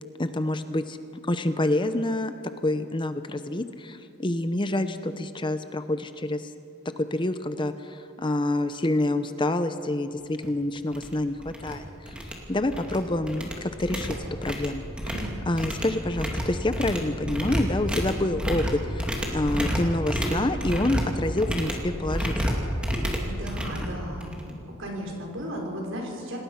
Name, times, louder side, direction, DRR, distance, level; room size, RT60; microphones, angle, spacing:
voice 1, 0.2-1.0 1.3-2.3 2.6-6.5 7.0-12.1 12.5-14.2 14.4-15.1 15.5-22.7, left 1 dB, 20° left, 10 dB, 0.7 m, -27 dB
sound 1, 10.4-10.5 10.9-11.1 11.4-11.7 12.1-13.0 13.3-24.5, equal, 5° right, 2.5 m, -30 dB
voice 2, 15.1-15.5 23.2-24.5 24.8-26.4, equal, 65° right, 0 dB, 5.6 m, -35 dB
28.0 x 18.5 x 5.8 m, 2.6 s
head